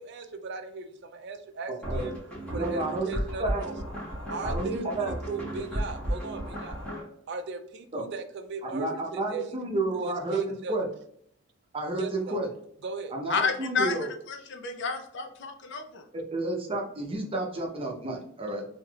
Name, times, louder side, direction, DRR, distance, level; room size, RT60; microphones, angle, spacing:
voice 1, 0.0-2.1 2.5-3.8 4.3-6.8 7.3-9.5 9.9-10.8 12.0-12.4 12.8-13.1, right 4 dB, 55° right, 8 dB, 0.4 m, -37 dB
sound 1, 1.8-7.0, equal, 5° left, 1.2 m, -34 dB
voice 2, 2.5-3.6 4.4-5.1 7.9-8.0 8.6-10.9 11.7-12.5 13.1-14.1 16.1-18.7, right 2 dB, 30° right, 0 dB, 0.7 m, -31 dB
voice 3, 13.3-16.1, left 5 dB, 60° left, 5 dB, 0.5 m, -31 dB
3.3 x 2.8 x 2.3 m, 0.67 s
head